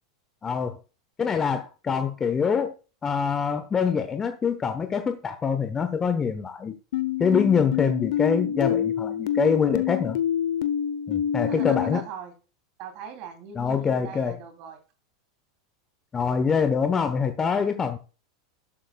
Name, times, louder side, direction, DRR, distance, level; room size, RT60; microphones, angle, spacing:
voice 1, 0.4-0.8 1.2-2.7 3.0-6.8 7.2-10.2 11.1-12.0 13.6-14.4 16.1-18.0, left 6 dB, 20° left, 1.0 m, -25 dB
sound 1, 6.9-12.0, left 9 dB, 65° left, 0.9 m, -27 dB
voice 2, 11.5-12.3 12.8-14.8, right 6 dB, 50° right, 3.1 m, -40 dB
12.5 x 11.5 x 2.4 m
figure-of-eight pair, 85°, 2 cm